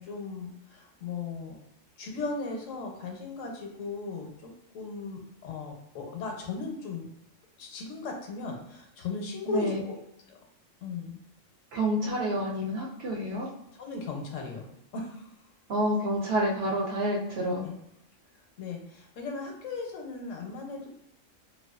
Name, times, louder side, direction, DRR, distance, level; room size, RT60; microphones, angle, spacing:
voice 1, 0.0-1.6 2.0-4.3 4.7-7.1 7.6-10.0 10.8-11.2 13.8-14.7 14.9-15.3 17.6-17.7 18.6-20.9, left 4 dB, 75° left, 1 dB, 1.0 m, -37 dB
voice 2, 9.5-9.9 11.7-13.5 15.7-17.6, right 1 dB, 65° right, -2 dB, 0.7 m, -28 dB
2.4 x 2.3 x 2.3 m, 0.80 s
omnidirectional pair, 1.4 m